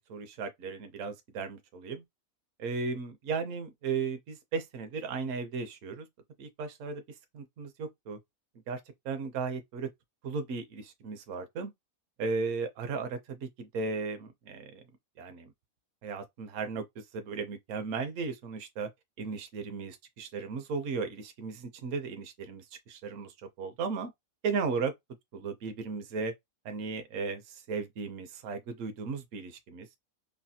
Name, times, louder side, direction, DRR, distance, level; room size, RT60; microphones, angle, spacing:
voice 1, 0.1-2.0 2.6-6.1 6.4-7.0 7.3-8.2 8.7-9.9 10.2-11.7 12.2-14.8 15.2-15.5 16.0-16.9 17.1-18.9 19.2-24.1 24.4-24.9 25.3-26.3 26.6-29.9, right 4 dB, 70° right, 0.9 m, -35 dB
3.2 x 2.1 x 2.7 m
omnidirectional pair, 1.5 m